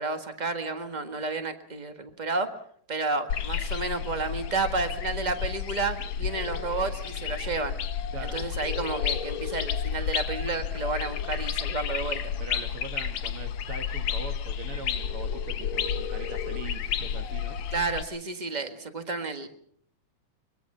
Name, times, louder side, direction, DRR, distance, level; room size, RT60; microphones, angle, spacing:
voice 1, 0.0-2.5 2.9-7.8 8.3-12.2 17.7-19.5, right 3 dB, 25° right, 7 dB, 1.1 m, -31 dB
sound 1, 3.3-18.0, left 8 dB, 65° left, 2.4 m, -31 dB
voice 2, 12.4-17.6, right 4 dB, 50° right, 6 dB, 2.6 m, -42 dB
23.5 x 23.0 x 5.5 m, 0.63 s
omnidirectional pair, 3.4 m